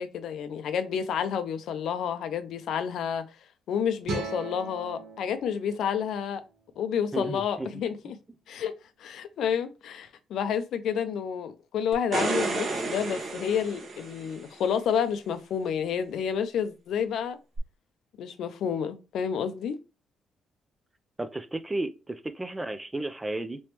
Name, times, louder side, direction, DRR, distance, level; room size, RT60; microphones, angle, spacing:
voice 1, 0.0-3.2 3.7-6.4 6.8-8.2 8.5-8.7 9.0-17.4 18.2-19.8, left 8 dB, 75° left, 0.5 m, -30 dB
sound 1, 4.0-7.2, right 3 dB, 75° right, 1.3 m, -39 dB
voice 2, 7.1-7.7 21.2-23.6, right 2 dB, 15° right, 0.4 m, -33 dB
sound 2, 11.9-14.5 17.6-17.7, right 3 dB, 55° right, 1.1 m, -31 dB
3.3 x 3.0 x 2.9 m
cardioid pair, 90°, 0 cm